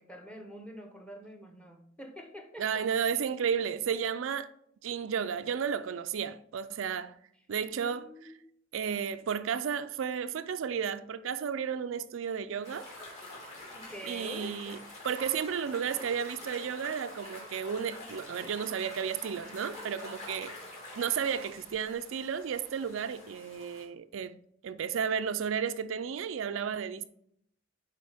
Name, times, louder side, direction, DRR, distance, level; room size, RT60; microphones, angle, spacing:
voice 1, 0.0-2.8 7.5-8.4 13.7-14.6, right 1 dB, 5° left, 0.9 m, -46 dB
voice 2, 2.6-4.5 4.8-7.2 7.5-8.1 8.7-12.9 14.1-14.8 15.0-20.5 20.9-24.4 24.6-27.1, right 7 dB, 75° right, 0.4 m, -33 dB
sound 1, 12.6-23.8, left 1 dB, 35° left, 2.6 m, -46 dB
9.5 x 4.1 x 3.5 m
head